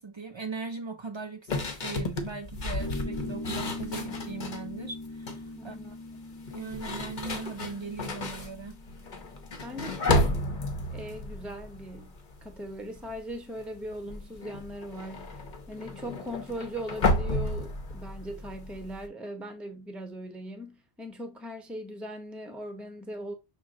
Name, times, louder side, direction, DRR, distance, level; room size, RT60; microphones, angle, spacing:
voice 1, 0.0-5.9 6.5-8.8, right 4 dB, 50° right, 0.3 m, -39 dB
sound 1, 1.5-4.7 5.1-5.5 6.4-12.6 12.9-13.3 13.6-19.1, left 2 dB, 50° left, 0.9 m, -32 dB
sound 2, 2.8-9.8, left 2 dB, 15° left, 1.2 m, -41 dB
voice 2, 5.6-6.0 9.6-10.4 10.9-15.4 15.7-23.3, equal, ahead, 0.6 m, -39 dB
6.2 x 2.1 x 3.6 m
omnidirectional pair, 1.1 m